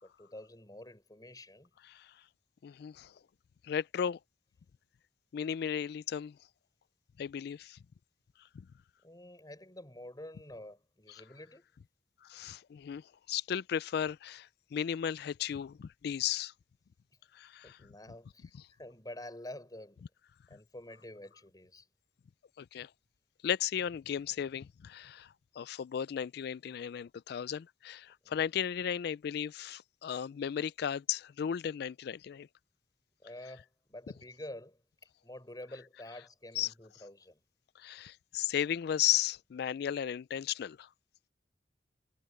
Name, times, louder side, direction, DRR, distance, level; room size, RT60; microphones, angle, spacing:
voice 1, 0.0-1.7 9.0-11.7 17.6-20.0 20.5-21.9 28.2-28.3 33.2-37.4, left 1 dB, 20° left, 6.3 m, -48 dB
voice 2, 2.6-3.1 3.6-4.2 5.3-6.4 7.2-7.8 8.5-8.7 12.2-16.5 17.3-17.8 22.6-22.9 23.4-32.5 36.6-36.7 37.8-40.9, left 9 dB, 60° left, 0.3 m, -35 dB
head